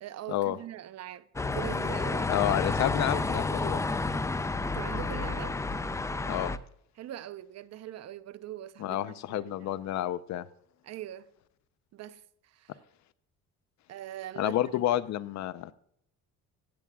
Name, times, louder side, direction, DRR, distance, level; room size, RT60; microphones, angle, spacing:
voice 1, 0.0-2.3 4.6-5.6 7.0-9.7 10.8-11.3 11.9-12.8 13.9-14.6 14.8-15.0, right 12 dB, 55° right, 0.7 m, -42 dB
sound 1, 1.4-6.6, left 3 dB, 10° left, 0.4 m, -30 dB
voice 2, 2.3-3.8 6.3-6.5 8.8-10.5 14.4-15.7, left 13 dB, 60° left, 0.6 m, -30 dB
14.5 x 8.5 x 2.3 m
cardioid pair, 110°, 32 cm